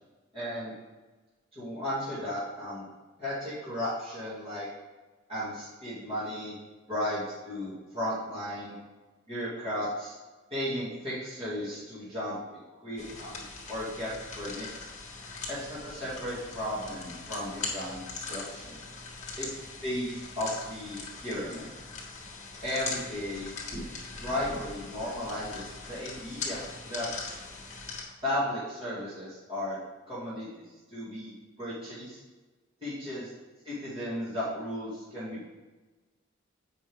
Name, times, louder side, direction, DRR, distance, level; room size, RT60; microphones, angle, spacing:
voice 1, 0.3-0.7 1.5-2.9 3.2-4.7 5.3-6.6 6.9-8.8 9.3-10.2 10.5-14.9 15.5-18.8 19.4-19.5 19.8-21.7 22.6-23.5 24.2-27.1 28.2-29.8 30.1-32.2 32.8-33.3 33.6-35.5, left 1 dB, 30° right, -12 dB, 2.3 m, -35 dB
sound 1, 13.0-28.0, left 4 dB, 35° left, 1.6 m, -41 dB
7.8 x 5.2 x 3.5 m, 1.2 s
head